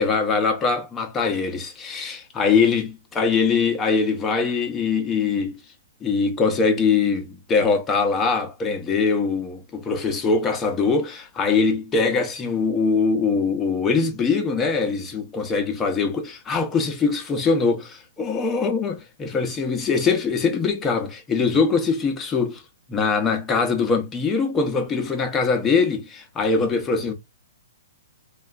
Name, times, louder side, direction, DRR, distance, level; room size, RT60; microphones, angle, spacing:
voice 1, 0.0-5.5 6.0-22.6 22.9-27.1, left 4 dB, 15° left, 0.6 m, -22 dB
3.0 x 2.3 x 2.3 m
hypercardioid pair, 150°, 0 cm